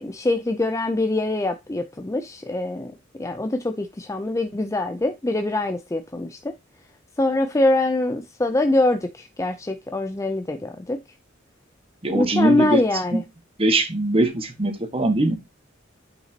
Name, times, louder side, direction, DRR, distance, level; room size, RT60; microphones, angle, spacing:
voice 1, 0.0-2.9 3.2-6.5 7.2-11.0 12.1-13.2, left 2 dB, 15° left, 0.4 m, -24 dB
voice 2, 12.0-12.8 13.1-13.2 13.6-15.4, right 1 dB, 30° right, 1.5 m, -21 dB
8.8 x 5.7 x 2.8 m
head